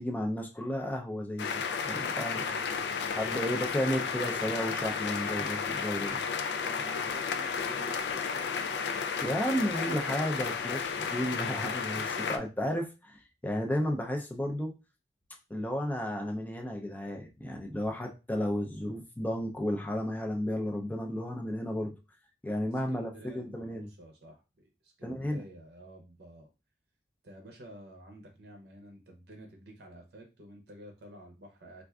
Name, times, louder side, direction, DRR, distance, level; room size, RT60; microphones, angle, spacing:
voice 1, 0.0-2.4 3.1-6.2 9.2-14.7 15.5-21.9 22.4-23.9 25.0-25.4, equal, 10° left, 2 dB, 0.4 m, -33 dB
sound 1, 1.4-12.4, left 6 dB, 75° left, 0.4 m, -33 dB
voice 2, 2.4-3.2 6.6-8.3 22.7-26.5 27.2-31.8, right 1 dB, 65° right, 2 dB, 0.6 m, -50 dB
4.4 x 2.4 x 2.3 m, 0.29 s
head